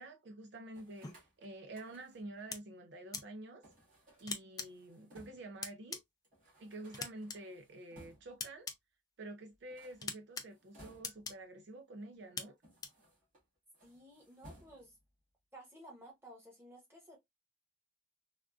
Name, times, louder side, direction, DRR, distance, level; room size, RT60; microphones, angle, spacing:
voice 1, 0.0-3.7 4.2-6.0 6.6-8.7 9.2-12.6, right 2 dB, 60° right, 0.4 m, -49 dB
sound 1, 0.7-2.4 3.6-5.6 6.0-6.1 6.2-8.5 9.6-11.4 12.1-13.4 13.7-15.1, equal, 45° right, 1.7 m, -61 dB
sound 2, 1.0-1.1 2.5-2.6 3.1-3.2 4.3-4.6 5.6-6.0 6.9-7.4 8.4-8.7 10.0-10.4 11.0-11.3 12.4-12.5 12.8-12.9, left 5 dB, 20° left, 0.3 m, -40 dB
voice 2, 13.8-14.9 15.5-17.2, right 1 dB, 10° right, 1.2 m, -55 dB
3.6 x 2.3 x 2.3 m
head